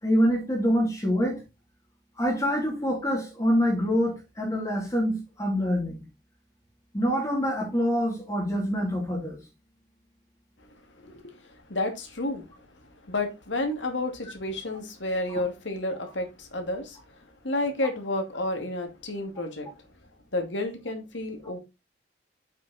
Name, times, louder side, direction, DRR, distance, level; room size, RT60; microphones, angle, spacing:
voice 1, 0.0-1.4 2.2-6.0 6.9-9.4 15.3-15.4, equal, 20° left, 3.0 m, -25 dB
voice 2, 11.0-12.5 13.0-19.7 20.3-21.6, left 2 dB, 85° left, 2.4 m, -31 dB
7.5 x 6.5 x 4.1 m
head